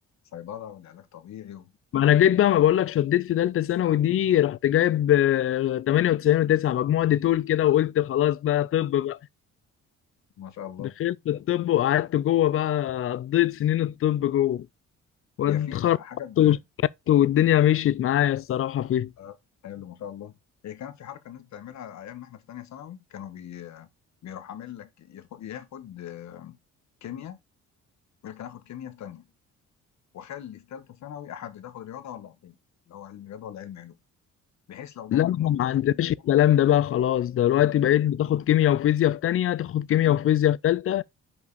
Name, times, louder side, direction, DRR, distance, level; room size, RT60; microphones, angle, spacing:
voice 1, 0.3-1.7 2.4-2.5 10.4-11.0 15.5-16.6 19.2-19.3 19.6-20.4 20.6-23.9 24.2-26.6 27.0-27.4 28.2-29.3 30.1-32.6 32.9-34.0 34.7-36.1, left 10 dB, 65° left, 1.2 m, -41 dB
voice 2, 1.9-9.2 11.0-14.7 15.4-16.0 16.4-16.6 17.1-19.1 35.1-41.0, left 12 dB, 45° left, 0.4 m, -22 dB
5.3 x 5.2 x 4.0 m
cardioid pair, 90°, 30 cm